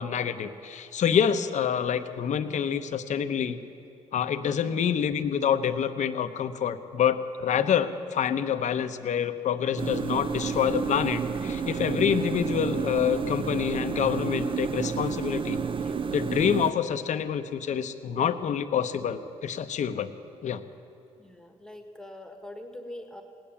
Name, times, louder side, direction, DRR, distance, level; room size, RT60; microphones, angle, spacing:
voice 1, 0.0-3.6 4.1-15.6 16.1-20.1 20.4-20.6, left 8 dB, 60° left, 10 dB, 0.8 m, -27 dB
sound 1, 9.8-16.7, right 6 dB, 40° right, 0.6 m, -30 dB
voice 2, 21.1-23.2, left 1 dB, 5° left, 5 dB, 1.4 m, -43 dB
17.0 x 10.5 x 7.0 m, 2.7 s
supercardioid pair, 70°, 14 cm